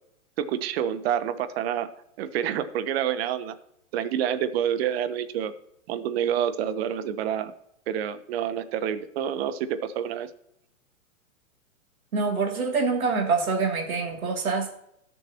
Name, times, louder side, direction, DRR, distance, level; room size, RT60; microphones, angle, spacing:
voice 1, 0.4-1.9 2.2-3.5 3.9-5.5 5.9-7.5 7.9-10.3, right 9 dB, 45° right, 12 dB, 1.1 m, -28 dB
voice 2, 12.1-14.7, right 4 dB, 80° right, 1 dB, 3.1 m, -25 dB
18.0 x 7.3 x 3.0 m, 0.77 s
hypercardioid pair, 130°, 42 cm